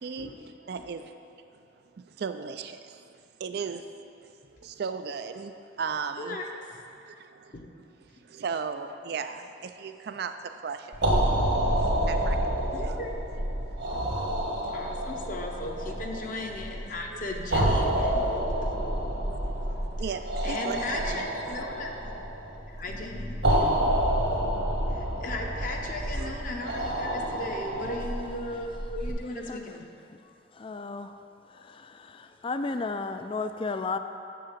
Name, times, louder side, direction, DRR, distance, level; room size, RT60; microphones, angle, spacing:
voice 1, 0.0-1.2 1.9-3.0 3.4-4.3 4.6-6.4 7.0-7.9 8.3-11.2 11.8-13.0 13.7-14.0 17.8-17.9 19.6-21.6 26.1-26.4, right 5 dB, 55° right, 9 dB, 0.3 m, -37 dB
voice 2, 6.2-6.5 7.5-7.7 12.7-13.1 14.7-18.2 20.4-22.1 22.7-23.7 24.9-29.9, left 2 dB, 45° left, 1 dB, 0.8 m, -36 dB
sound 1, 10.9-29.1, right 1 dB, 75° right, 1.6 m, -28 dB
voice 3, 30.5-31.2 31.5-34.0, left 3 dB, 30° left, 9 dB, 0.3 m, -34 dB
6.7 x 6.2 x 7.3 m, 2.6 s
head